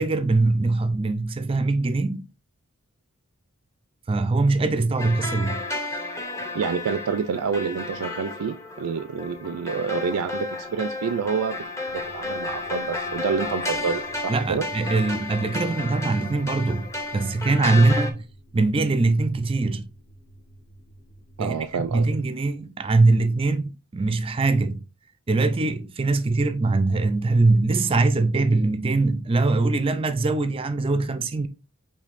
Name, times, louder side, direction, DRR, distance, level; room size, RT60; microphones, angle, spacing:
voice 1, 0.0-2.2 4.1-5.6 14.3-18.2 18.5-19.9 21.4-24.8 25.3-31.5, right 3 dB, 25° right, 0.4 m, -22 dB
sound 1, 5.0-18.1, left 2 dB, 15° left, 0.6 m, -32 dB
voice 2, 6.5-11.5 11.9-14.7 17.7-17.8 21.4-22.1, right 6 dB, 90° right, 0.4 m, -28 dB
sound 2, 11.9-21.9, right 1 dB, 60° left, 1.5 m, -51 dB
6.4 x 3.2 x 2.5 m
head